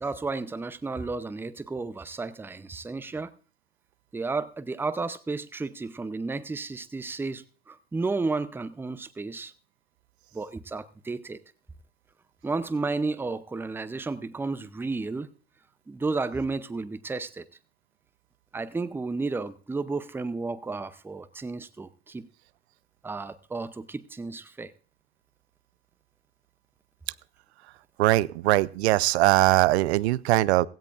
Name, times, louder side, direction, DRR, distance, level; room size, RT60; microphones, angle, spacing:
voice 1, 0.0-3.3 4.1-9.5 10.3-11.4 12.4-15.3 15.9-17.5 18.5-22.3 23.0-24.7, right 3 dB, 5° right, 13 dB, 0.6 m, -32 dB
voice 2, 28.0-30.7, right 17 dB, 70° right, 19 dB, 0.5 m, -21 dB
16.5 x 16.0 x 2.5 m, 0.40 s
hypercardioid pair, 95°, 34 cm